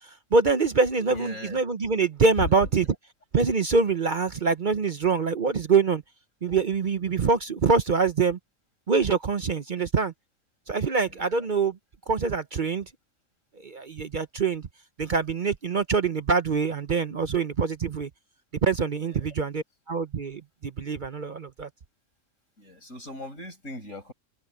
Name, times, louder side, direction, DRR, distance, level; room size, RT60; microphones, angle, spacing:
voice 1, 0.3-2.8 3.3-6.0 6.4-8.4 8.9-10.1 10.7-11.8 12.1-12.8 13.6-14.6 15.0-18.1 18.6-21.7, right 4 dB, 45° right, 0.8 m, -24 dB
voice 2, 1.0-1.6 2.4-2.7 11.1-11.5 19.0-19.3 22.6-24.1, left 1 dB, 80° left, 8.6 m, -37 dB
omnidirectional pair, 1.3 m